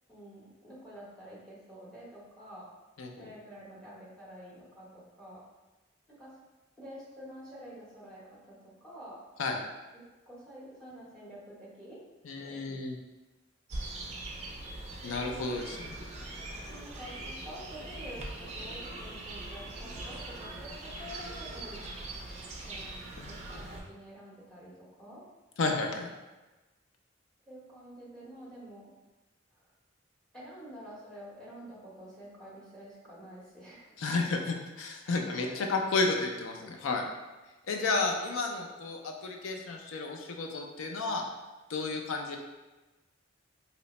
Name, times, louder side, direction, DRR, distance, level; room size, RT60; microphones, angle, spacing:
voice 1, 0.1-2.7 3.2-5.4 6.1-6.3 6.8-9.2 9.9-12.0 12.4-12.8 15.2-15.6 16.7-21.8 22.5-23.0 23.2-25.2 27.5-28.9 29.5-29.7 30.3-34.2 35.0-35.7 38.0-38.3, equal, 5° left, -8 dB, 0.9 m, -48 dB
voice 2, 3.0-3.3 9.4-9.6 12.2-13.0 15.0-15.8 23.2-23.6 25.6-26.1 34.0-37.0 37.7-41.2 41.7-42.4, left 3 dB, 80° left, 2 dB, 0.5 m, -32 dB
sound 1, 13.7-23.8, right 2 dB, 35° right, 0.4 m, -41 dB
2.8 x 2.1 x 4.1 m, 1.1 s
head